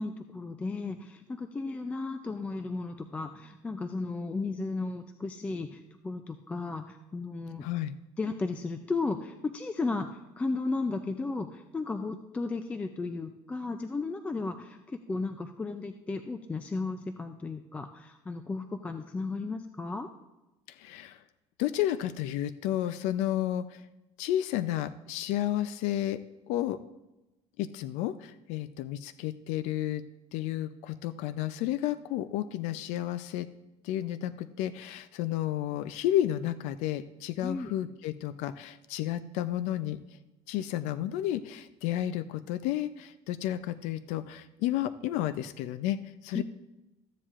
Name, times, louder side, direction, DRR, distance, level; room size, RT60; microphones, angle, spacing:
voice 1, 0.0-7.7 8.2-20.1 37.4-37.7 46.3-46.4, left 3 dB, 10° left, 7 dB, 0.3 m, -34 dB
voice 2, 7.6-7.9 20.7-21.2 21.6-23.8 24.2-26.2 26.5-26.8 27.6-30.0 30.3-33.5 33.8-40.2 40.5-46.4, left 12 dB, 75° left, 12 dB, 0.5 m, -32 dB
14.5 x 9.9 x 2.5 m, 1.0 s
cardioid pair, 170°, 12 cm